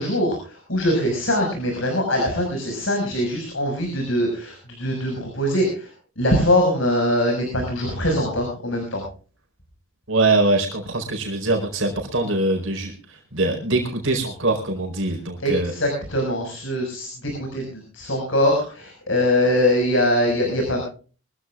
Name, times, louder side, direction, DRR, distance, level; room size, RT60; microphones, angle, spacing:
voice 1, 0.0-9.0 15.4-20.8, left 1 dB, 65° left, 2 dB, 6.0 m, -22 dB
voice 2, 10.1-15.7, right 2 dB, 65° right, 1 dB, 4.6 m, -23 dB
24.0 x 16.0 x 2.5 m, 0.38 s
head